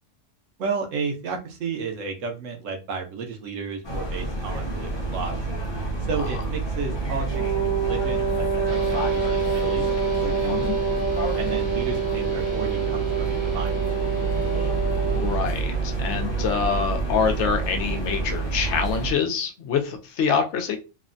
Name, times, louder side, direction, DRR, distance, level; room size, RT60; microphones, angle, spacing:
voice 1, 0.6-5.4 6.1-7.4 7.9-9.9 10.2-10.7 11.4-14.0, right 5 dB, 85° right, 3 dB, 1.1 m, -33 dB
sound 1, 3.8-19.1, right 3 dB, 30° left, 0.5 m, -28 dB
Wind instrument woodwind instrument, 7.3-15.4, right 6 dB, 60° right, 1.0 m, -26 dB
sound 2, 8.7-18.4, right 2 dB, 40° right, 0.5 m, -40 dB
voice 2, 10.5-10.8 15.1-20.8, left 6 dB, 70° left, 5 dB, 0.8 m, -25 dB
3.1 x 2.1 x 2.4 m, 0.30 s
omnidirectional pair, 1.3 m